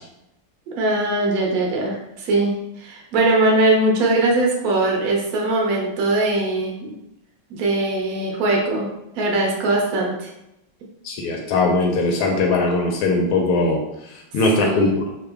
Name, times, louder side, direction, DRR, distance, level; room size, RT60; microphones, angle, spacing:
voice 1, 0.8-2.5 2.8-6.9 7.5-8.8 9.2-10.3 14.6-14.9, right 2 dB, 65° right, -1 dB, 0.9 m, -20 dB
voice 2, 11.0-13.8 14.3-14.9, left 2 dB, 80° left, 1 dB, 1.4 m, -20 dB
3.7 x 2.0 x 3.3 m, 0.86 s
omnidirectional pair, 2.4 m